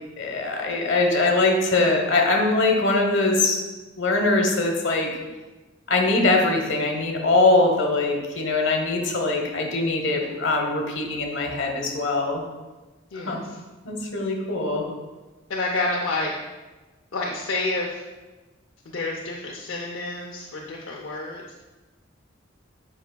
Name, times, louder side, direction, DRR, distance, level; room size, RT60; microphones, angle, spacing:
voice 1, 0.2-3.6 4.0-5.1 5.9-12.4 13.3-13.4 13.8-14.8, left 2 dB, 75° left, 1 dB, 1.1 m, -22 dB
voice 2, 13.1-13.6 15.5-16.3 17.1-18.0 18.9-21.6, left 2 dB, 90° left, -2 dB, 0.6 m, -29 dB
8.1 x 5.2 x 2.3 m, 1.2 s
head